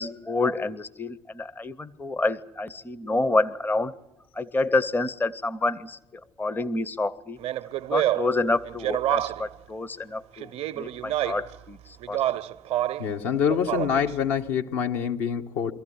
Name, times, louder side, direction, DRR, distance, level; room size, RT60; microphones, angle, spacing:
voice 1, 0.0-3.9 4.3-7.4 7.9-12.2, left 2 dB, 15° left, 0.7 m, -28 dB
Speech, 7.4-9.6 10.4-11.6 12.0-13.1 13.5-14.1, right 13 dB, 50° right, 0.7 m, -28 dB
voice 2, 13.0-15.7, left 7 dB, 65° left, 1.2 m, -26 dB
24.0 x 14.5 x 9.8 m
figure-of-eight pair, 50°, 14 cm